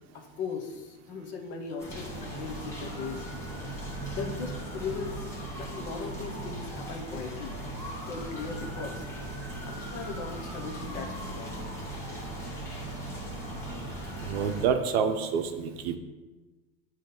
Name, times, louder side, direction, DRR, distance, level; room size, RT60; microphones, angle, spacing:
voice 1, 0.0-3.3 4.1-5.3 5.6-7.6 8.1-9.1 9.7-11.6, left 5 dB, 25° left, 4 dB, 0.4 m, -38 dB
sound 1, 1.8-14.7, right 1 dB, 10° left, 0.9 m, -38 dB
voice 2, 14.3-16.0, right 6 dB, 70° right, 8 dB, 0.7 m, -27 dB
7.7 x 2.7 x 5.1 m, 1.2 s
supercardioid pair, 175°, 32 cm